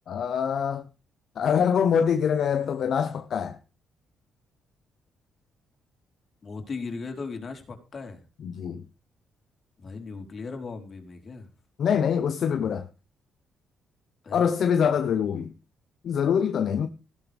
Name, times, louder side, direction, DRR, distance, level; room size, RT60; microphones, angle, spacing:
voice 1, 0.1-0.8 1.4-3.6 8.4-8.8 11.8-12.8 14.3-15.5 16.0-16.9, left 7 dB, 60° left, 1.1 m, -24 dB
voice 2, 6.4-8.2 9.8-11.5 14.2-14.5, left 4 dB, 40° left, 4.3 m, -37 dB
16.0 x 12.0 x 3.6 m
cardioid pair, 90°, 0 cm